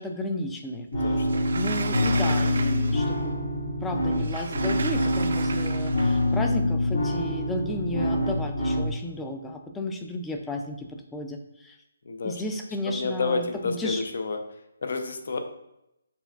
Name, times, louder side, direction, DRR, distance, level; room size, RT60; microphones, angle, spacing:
voice 1, 0.0-1.2 1.5-3.3 3.8-11.8 12.2-14.0, left 1 dB, 10° left, 4 dB, 0.4 m, -33 dB
sound 1, 0.9-8.9, left 1 dB, 80° left, 1.4 m, -26 dB
voice 2, 1.0-1.4 12.1-12.3 12.9-14.4 14.8-15.4, left 4 dB, 65° left, 6 dB, 0.6 m, -30 dB
Sliding door, 1.2-3.2 4.1-6.3, right 4 dB, 65° right, 0.4 m, -35 dB
6.8 x 2.3 x 2.4 m, 0.86 s
hypercardioid pair, 155°, 0 cm